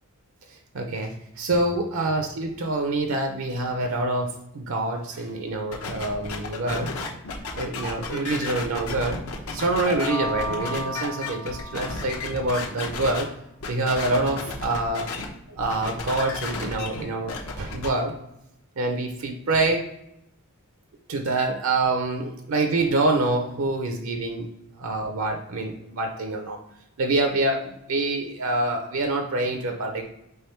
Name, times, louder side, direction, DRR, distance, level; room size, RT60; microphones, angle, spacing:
voice 1, 0.5-6.9 7.5-9.2 9.5-13.3 13.7-15.1 15.5-18.1 18.8-19.9 21.1-24.5 24.8-26.6 27.0-30.1, right 2 dB, 65° right, 4 dB, 0.5 m, -26 dB
sound 1, 5.7-13.2 13.6-15.3 15.6-17.9, left 4 dB, 75° left, 0.9 m, -33 dB
sound 2, 9.8-12.6, left 1 dB, 15° left, 0.4 m, -34 dB
3.4 x 3.4 x 4.3 m, 0.83 s
head